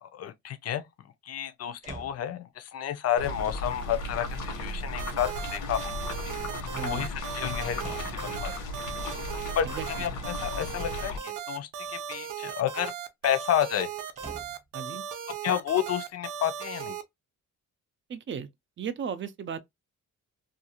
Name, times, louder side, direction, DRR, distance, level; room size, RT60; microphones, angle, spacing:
voice 1, 0.0-0.9 1.2-5.9 6.8-8.5 9.6-12.9 13.2-13.9 15.4-17.0, left 10 dB, 55° left, 0.5 m, -30 dB
sound 1, 1.8-2.3 4.8-5.5 6.4-6.9 7.8-8.3 11.8-12.3 14.2-14.7 15.4-15.5, right 2 dB, 25° right, 0.9 m, -46 dB
sound 2, 3.2-11.2, left 2 dB, 85° left, 1.0 m, -36 dB
sound 3, 5.0-17.0, right 8 dB, 85° right, 0.6 m, -37 dB
voice 2, 6.7-7.1 9.6-9.9 14.7-15.0 18.1-18.5 18.8-19.6, right 7 dB, 40° right, 0.4 m, -35 dB
2.5 x 2.3 x 2.8 m
cardioid pair, 130°, 30 cm